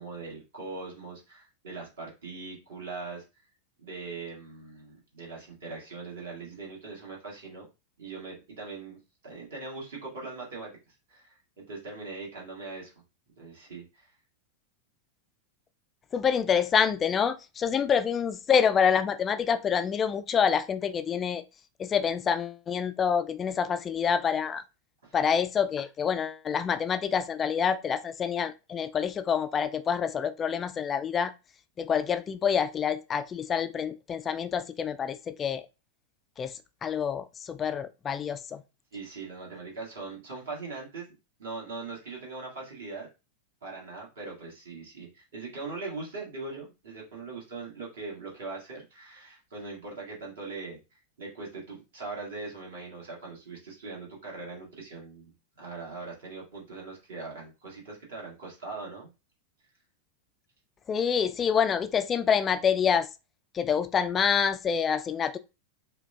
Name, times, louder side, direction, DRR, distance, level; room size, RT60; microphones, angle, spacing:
voice 1, 0.0-3.2 3.8-7.7 8.0-12.9 13.4-14.1 25.0-25.2 38.9-41.1 41.4-43.1 43.6-50.8 51.2-55.3 55.6-59.1, right 3 dB, 60° right, 1.8 m, -41 dB
voice 2, 16.1-21.4 21.8-24.6 25.1-31.3 31.8-35.7 36.4-38.6 60.9-63.1 63.5-65.4, left 7 dB, 25° left, 0.3 m, -27 dB
4.8 x 2.3 x 3.3 m
figure-of-eight pair, 90°, 0 cm